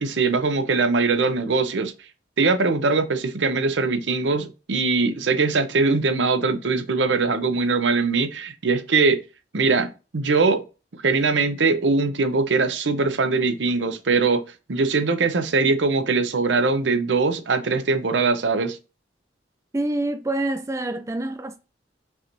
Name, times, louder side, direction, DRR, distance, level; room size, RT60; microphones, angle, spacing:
voice 1, 0.0-1.9 2.4-9.2 9.5-10.6 11.0-14.4 14.7-18.8, right 4 dB, 85° right, 0.7 m, -21 dB
voice 2, 19.7-21.6, right 2 dB, 15° right, 0.3 m, -26 dB
5.5 x 3.0 x 2.5 m
head